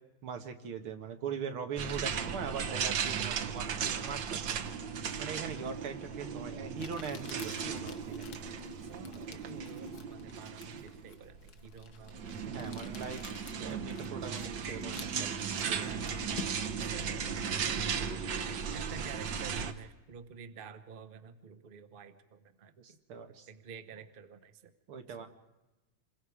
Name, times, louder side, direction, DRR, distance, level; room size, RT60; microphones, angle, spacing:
voice 1, 0.2-4.6 5.2-8.4 9.1-9.2 12.5-13.2 13.6-15.3 15.7-15.9 22.8-23.5 24.9-25.3, right 6 dB, 80° right, 6 dB, 2.3 m, -41 dB
sound 1, 1.8-19.7, right 6 dB, 65° right, 1.7 m, -36 dB
Crumpling crinkling, 5.9-6.0 6.8-16.9, left 8 dB, 55° left, 1.3 m, -51 dB
voice 2, 8.9-13.0 15.5-17.3 18.7-23.0 23.5-24.7 25.1-25.2, right 7 dB, 35° right, 10 dB, 0.9 m, -50 dB
27.5 x 22.0 x 4.9 m, 1.1 s
omnidirectional pair, 2.3 m